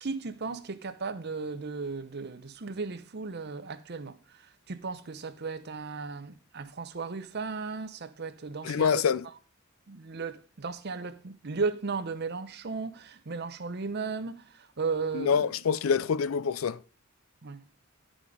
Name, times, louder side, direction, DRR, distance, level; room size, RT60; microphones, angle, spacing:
voice 1, 0.0-9.0 9.9-15.5 17.4-17.6, right 4 dB, 50° right, 0.7 m, -35 dB
voice 2, 8.6-9.2 15.1-16.8, left 6 dB, 90° left, 0.5 m, -26 dB
10.5 x 5.0 x 5.0 m
head